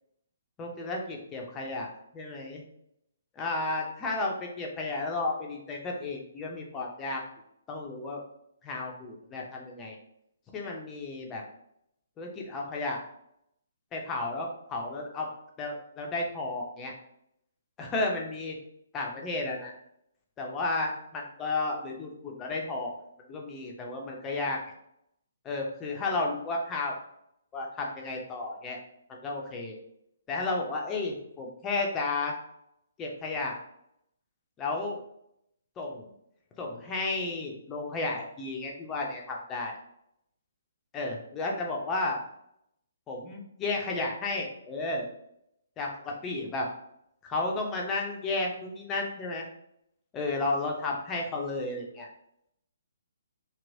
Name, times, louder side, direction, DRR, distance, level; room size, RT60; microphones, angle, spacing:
voice 1, 0.6-2.6 3.3-7.2 7.7-8.2 8.6-10.0 10.5-11.4 12.2-13.0 13.9-15.3 15.6-16.9 17.8-18.6 18.9-19.7 20.4-22.9 23.3-24.6 25.4-26.9 27.5-28.8 29.1-29.8 30.3-32.3 33.0-33.6 34.6-35.0 35.8-36.1 36.6-39.7 40.9-42.2 43.1-45.1 45.8-46.7 47.2-49.5 50.1-52.1, left 2 dB, 15° left, -1 dB, 0.6 m, -33 dB
3.0 x 2.9 x 2.6 m, 0.76 s
figure-of-eight pair, 130°, 0 cm